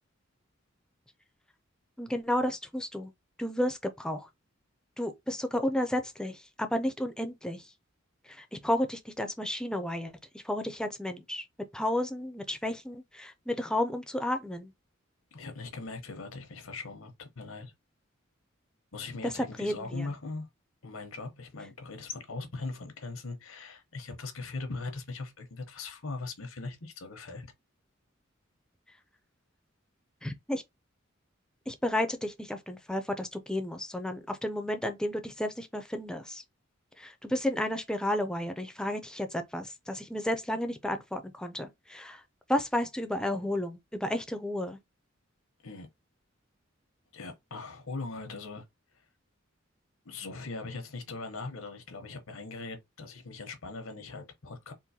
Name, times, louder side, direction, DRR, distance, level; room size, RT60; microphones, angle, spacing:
voice 1, 2.0-3.1 3.4-4.3 5.0-7.6 8.3-10.1 10.4-11.4 11.7-14.7 19.2-20.1 30.2-30.6 31.7-36.4 37.0-42.2 42.5-44.8, left 1 dB, 5° left, 0.4 m, -32 dB
voice 2, 15.3-17.7 18.9-20.5 20.8-27.5 45.6-45.9 47.1-48.7 50.0-54.7, left 3 dB, 90° left, 0.9 m, -40 dB
3.8 x 2.5 x 2.7 m
head